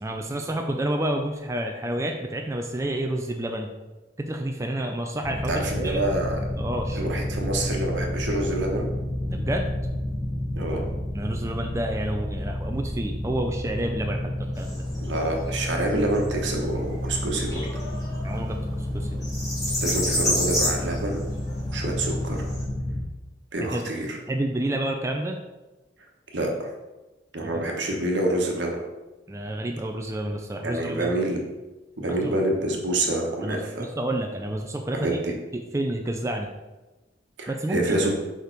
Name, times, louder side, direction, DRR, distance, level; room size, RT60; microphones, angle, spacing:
voice 1, 0.0-3.7 4.2-6.0 6.6-7.0 9.3-9.7 11.1-14.8 18.2-19.3 23.7-23.9 24.3-25.4 27.4-27.6 29.3-31.1 32.2-32.4 33.4-35.1 35.5-36.5 37.5-38.0, right 1 dB, 15° right, 3 dB, 0.4 m, -29 dB
sound 1, 5.2-23.0, left 1 dB, 35° left, 2.1 m, -30 dB
voice 2, 5.4-6.4 6.9-8.9 10.6-10.8 15.0-17.7 19.8-21.2 21.7-22.5 23.5-24.2 26.3-26.7 27.3-28.8 30.6-31.4 32.0-33.9 35.0-35.3 37.4-38.1, right 1 dB, 75° right, 1 dB, 1.2 m, -27 dB
sound 2, 14.6-22.6, left 1 dB, 20° left, 2.2 m, -31 dB
5.1 x 4.7 x 4.5 m, 1.1 s
head